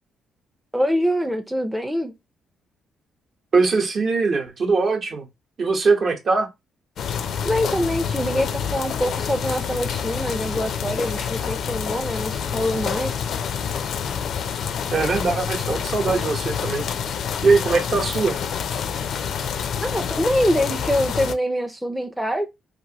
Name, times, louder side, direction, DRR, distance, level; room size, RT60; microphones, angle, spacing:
voice 1, 0.7-2.1 7.4-13.3 19.8-22.5, equal, 5° right, 0.5 m, -24 dB
voice 2, 3.5-5.3 5.6-6.5 14.9-16.9 17.4-18.4, right 4 dB, 50° right, 0.9 m, -21 dB
sound 1, 7.0-21.3, left 7 dB, 65° left, 0.4 m, -27 dB
2.9 x 2.5 x 2.8 m
cardioid pair, 90°, 0 cm